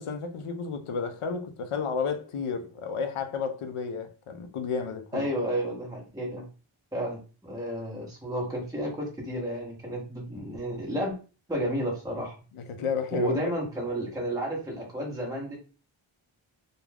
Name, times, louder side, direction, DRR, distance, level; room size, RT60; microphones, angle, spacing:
voice 1, 0.0-5.3 12.6-13.4, left 5 dB, 85° left, 0.5 m, -32 dB
voice 2, 5.1-6.4 6.9-11.1 11.5-12.4 13.1-15.5, equal, 5° right, 0.7 m, -31 dB
2.4 x 2.2 x 3.2 m
wide cardioid pair, 80°, 50 cm